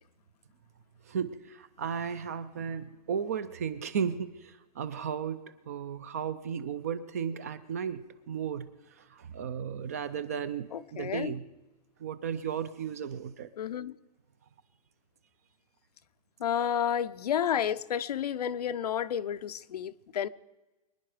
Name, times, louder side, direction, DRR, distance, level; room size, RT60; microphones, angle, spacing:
voice 1, 1.1-5.4 5.7-8.7 9.1-11.4 12.0-13.5, right 7 dB, 25° right, 0.4 m, -34 dB
voice 2, 10.7-11.4 13.6-14.0 16.4-20.3, left 9 dB, 70° left, 0.6 m, -31 dB
24.0 x 10.0 x 4.9 m
hypercardioid pair, 175°, 21 cm